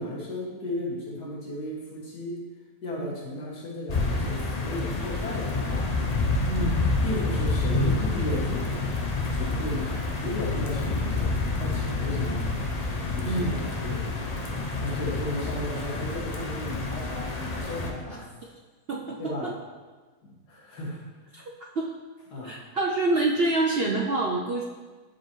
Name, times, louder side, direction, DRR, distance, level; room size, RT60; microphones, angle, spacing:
voice 1, 0.0-2.5 2.8-6.0 7.0-8.9 9.3-11.3 11.6-12.5 13.1-14.1 14.7-18.3 19.2-19.5 20.5-21.0 22.3-22.6, left 1 dB, 80° left, -6 dB, 2.6 m, -35 dB
sound 1, 3.9-17.9, left 3 dB, 40° left, 0.6 m, -28 dB
voice 2, 6.5-6.8 13.3-13.5 18.1-18.2 18.9-19.5 21.3-21.4 21.7-21.9 22.4-24.6, right 2 dB, 60° right, -1 dB, 0.6 m, -27 dB
12.0 x 5.0 x 3.1 m, 1.3 s
omnidirectional pair, 1.7 m